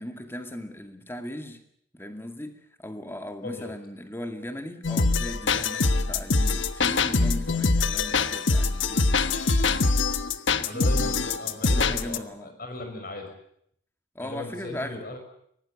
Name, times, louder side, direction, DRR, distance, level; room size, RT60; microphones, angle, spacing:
voice 1, 0.0-1.6 1.9-10.0 10.6-11.3 11.5-12.5 14.1-15.1, left 1 dB, 10° left, 6 dB, 2.2 m, -38 dB
sound 1, 4.8-12.2, left 3 dB, 80° left, 1.2 m, -23 dB
voice 2, 10.6-13.3 14.2-15.2, left 2 dB, 50° left, 6 dB, 5.9 m, -37 dB
24.0 x 18.5 x 8.4 m, 0.71 s
head